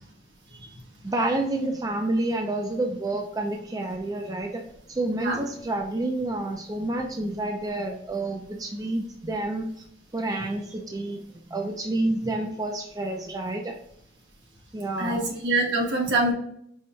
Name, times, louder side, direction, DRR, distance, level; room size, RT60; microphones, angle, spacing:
voice 1, 1.0-4.6 4.9-9.7 10.1-11.2 11.5-13.8 14.7-15.2, right 2 dB, 20° right, 3 dB, 0.3 m, -29 dB
voice 2, 15.0-16.3, right 2 dB, 85° right, -1 dB, 1.1 m, -24 dB
5.3 x 2.2 x 3.0 m, 0.71 s
head